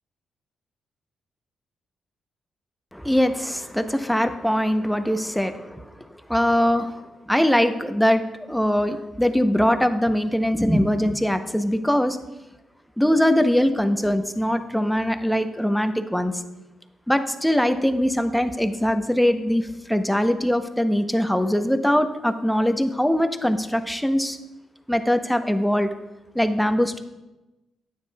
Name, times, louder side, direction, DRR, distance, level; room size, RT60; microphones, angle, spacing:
voice 1, 2.9-7.0 7.3-8.2 8.5-12.2 13.0-16.3 17.1-24.4 24.9-25.9 26.3-27.0, equal, 5° left, 8 dB, 0.7 m, -22 dB
9.5 x 9.1 x 2.3 m, 1.0 s
supercardioid pair, 60°, 0 cm